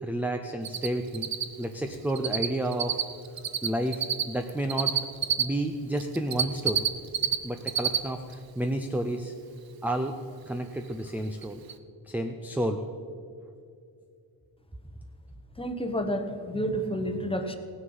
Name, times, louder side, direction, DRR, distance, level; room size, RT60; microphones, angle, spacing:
voice 1, 0.0-1.3 1.6-3.1 3.6-4.9 5.4-6.9 7.4-9.3 9.8-10.2 10.5-11.6 12.1-12.8, right 1 dB, 5° right, 6 dB, 0.4 m, -30 dB
Cricket, 0.6-0.9 1.1-5.4 6.0-7.4 7.6-8.0 8.3-8.4 10.9-11.0 11.4-11.5 11.7-11.8, right 9 dB, 50° right, 0.7 m, -26 dB
voice 2, 15.6-17.6, equal, 10° left, 7 dB, 0.9 m, -30 dB
16.5 x 9.8 x 5.4 m, 2.4 s
wide cardioid pair, 150°, 46 cm